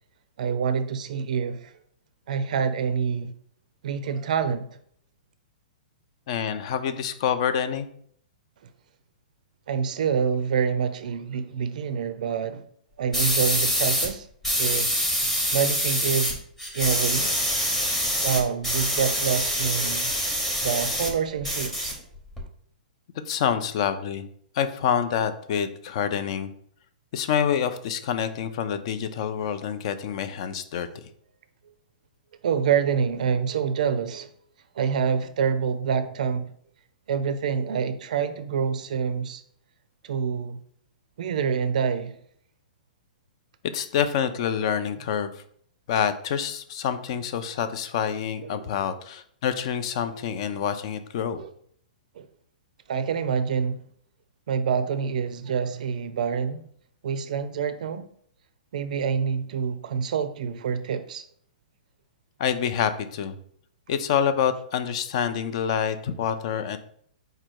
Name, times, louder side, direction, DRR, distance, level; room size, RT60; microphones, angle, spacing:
voice 1, 0.4-1.7 2.3-3.3 3.8-4.7 9.7-12.6 13.0-14.3 14.6-15.0 15.5-16.4 16.7-17.4 18.1-20.1 20.6-22.0 30.8-30.9 32.4-34.3 34.7-36.5 37.1-39.4 40.0-40.6 41.2-42.2 48.5-48.9 50.3-50.4 51.4-51.5 52.2-52.3 52.9-53.9 54.5-56.7 57.0-58.1 58.7-61.2, right 6 dB, 65° right, 0.4 m, -27 dB
voice 2, 6.3-7.9 23.3-24.3 24.5-26.5 27.1-30.9 43.7-45.4 45.9-51.4 62.4-63.4 63.9-66.8, left 8 dB, 40° left, 0.4 m, -27 dB
sound 1, 13.1-14.1 14.4-16.3 16.6-21.1 21.4-22.4, equal, 5° left, 0.8 m, -25 dB
4.8 x 2.2 x 4.5 m
hypercardioid pair, 165°, 5 cm